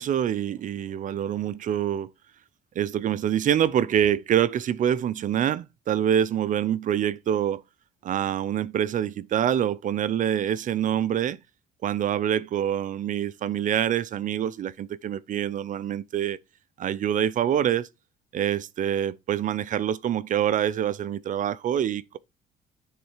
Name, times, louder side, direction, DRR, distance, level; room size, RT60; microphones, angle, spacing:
voice 1, 0.0-2.1 2.8-7.6 8.0-11.4 11.8-16.4 16.8-17.9 18.3-22.2, right 10 dB, 50° right, 0.7 m, -25 dB
10.0 x 4.1 x 4.6 m
cardioid pair, 110°, 17 cm